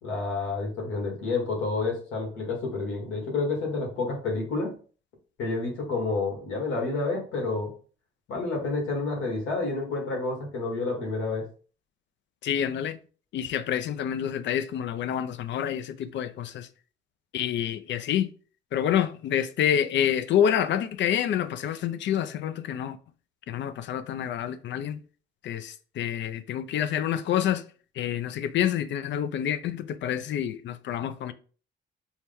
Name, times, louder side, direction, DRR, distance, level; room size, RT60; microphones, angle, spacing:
voice 1, 0.0-4.7 5.4-7.7 8.3-11.4, left 3 dB, 90° left, 1.5 m, -29 dB
voice 2, 12.4-13.0 13.3-16.7 17.3-18.3 18.7-23.0 23.5-25.0 25.4-27.6 28.0-31.3, left 9 dB, 65° left, 0.5 m, -27 dB
4.5 x 2.2 x 3.5 m
cardioid pair, 90°, 20 cm